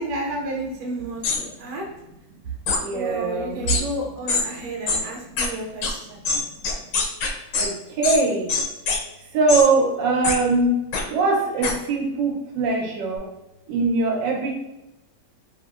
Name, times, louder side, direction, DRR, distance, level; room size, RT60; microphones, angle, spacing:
voice 1, 0.0-1.9 2.9-6.3, right 2 dB, 70° right, -1 dB, 1.3 m, -30 dB
sound 1, 1.2-1.4 2.7-2.8 3.7-3.8 4.3-4.4 4.9-5.0 5.4-5.5 5.8-5.9 6.2-7.7 8.0-8.2 8.5-9.0 9.5-9.7 10.2-10.4 10.9-11.0 11.6-11.7, left 4 dB, 85° left, 1.2 m, -23 dB
voice 2, 2.8-3.6 7.5-8.5 9.3-10.8 11.1-13.2 13.7-14.5, right 3 dB, 90° right, -1 dB, 1.3 m, -21 dB
3.0 x 2.8 x 2.3 m, 0.96 s
omnidirectional pair, 1.9 m